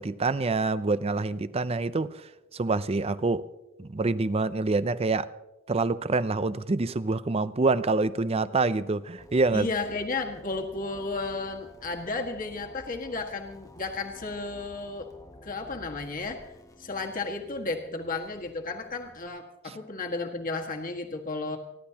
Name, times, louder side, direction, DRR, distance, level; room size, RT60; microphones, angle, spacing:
voice 1, 0.0-2.1 2.5-3.4 3.8-5.3 5.7-9.7 19.7-19.8, right 3 dB, 30° right, 15 dB, 0.5 m, -26 dB
sound 1, 9.2-19.3, left 1 dB, 15° left, 0.9 m, -52 dB
voice 2, 9.5-15.1 15.4-16.5 16.8-21.6, left 3 dB, 45° left, 2 dB, 1.8 m, -33 dB
29.5 x 11.5 x 2.9 m, 0.96 s
head